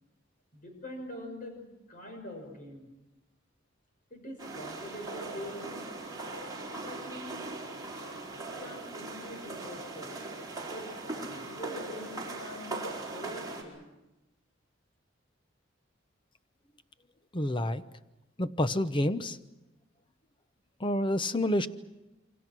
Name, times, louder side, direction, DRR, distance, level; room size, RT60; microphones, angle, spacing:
voice 1, 0.5-1.6 1.9-2.9 4.1-5.8 6.7-7.4 8.4-10.2 10.7-10.9 11.1-12.8 13.1-13.9, equal, 45° left, 4 dB, 6.0 m, -44 dB
sound 1, 4.4-13.6, right 2 dB, 20° right, 4.7 m, -40 dB
voice 2, 17.3-17.8 18.4-19.4 20.8-21.7, left 1 dB, 25° left, 12 dB, 0.9 m, -28 dB
28.5 x 24.5 x 6.2 m, 0.99 s
head